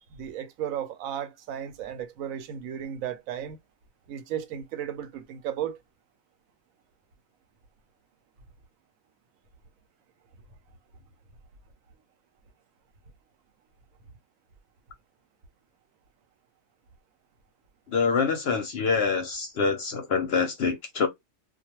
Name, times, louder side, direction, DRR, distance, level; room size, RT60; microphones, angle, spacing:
voice 1, 0.1-3.6 4.1-5.8, right 10 dB, 80° right, 1.0 m, -34 dB
voice 2, 17.9-21.1, left 5 dB, 60° left, 0.7 m, -25 dB
2.3 x 2.2 x 2.9 m
omnidirectional pair, 1.4 m